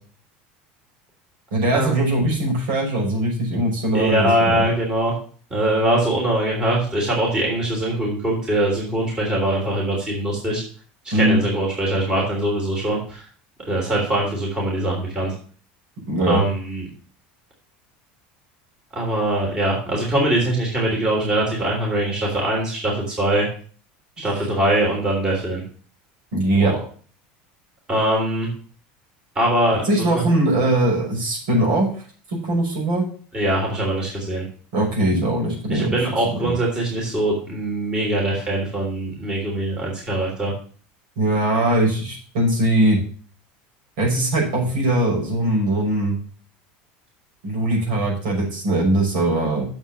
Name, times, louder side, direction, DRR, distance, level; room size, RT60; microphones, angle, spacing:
voice 1, 1.5-4.7 11.1-11.4 16.1-16.4 26.3-26.7 29.8-31.9 32.3-33.1 34.7-36.0 36.2-36.5 41.2-43.0 44.0-46.2 47.4-49.7, right 1 dB, 75° right, -2 dB, 5.6 m, -21 dB
voice 2, 3.9-5.2 5.5-10.6 11.0-13.2 13.7-15.3 16.3-16.8 18.9-23.5 24.2-25.6 26.6-26.8 27.9-28.5 29.3-30.2 33.3-34.4 35.7-40.5, right 1 dB, 20° right, -2 dB, 3.4 m, -22 dB
7.2 x 5.7 x 7.1 m, 0.43 s
cardioid pair, 160°, 5 cm